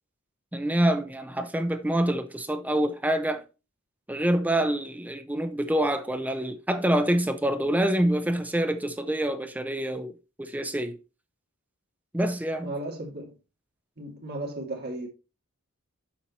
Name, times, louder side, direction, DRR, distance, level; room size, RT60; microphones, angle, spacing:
voice 1, 0.5-3.4 4.1-11.0 12.1-12.7, right 1 dB, 10° right, 0.6 m, -26 dB
voice 2, 12.6-13.3 14.0-15.1, right 2 dB, 50° right, 2.2 m, -35 dB
7.3 x 5.0 x 4.1 m
head